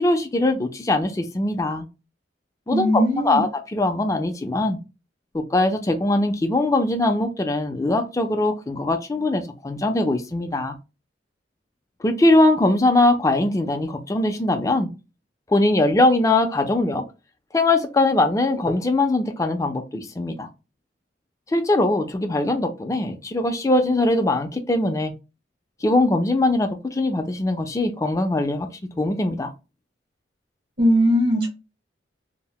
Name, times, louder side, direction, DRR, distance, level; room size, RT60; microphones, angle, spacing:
voice 1, 0.0-1.9 2.7-4.8 5.3-10.8 12.0-14.9 15.5-17.0 17.5-20.5 21.5-25.1 25.8-28.7 29.0-29.5, left 2 dB, 15° left, 0.4 m, -21 dB
voice 2, 2.7-3.5 30.8-31.5, equal, 55° right, 0.9 m, -19 dB
2.7 x 2.0 x 3.0 m
head